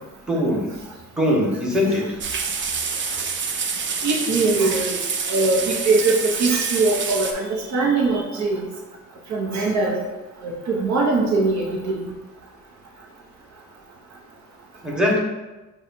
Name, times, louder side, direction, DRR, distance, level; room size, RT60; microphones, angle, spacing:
voice 1, 0.3-0.7 1.2-2.2 14.8-15.2, left 1 dB, 5° right, -4 dB, 1.3 m, -21 dB
sound 1, 2.2-7.3, right 5 dB, 40° right, 0.5 m, -27 dB
voice 2, 4.0-5.0 5.3-8.7 9.3-10.0 10.4-12.1, right 3 dB, 65° right, -2 dB, 0.9 m, -21 dB
6.6 x 2.4 x 2.7 m, 1.1 s
cardioid pair, 90°, 30 cm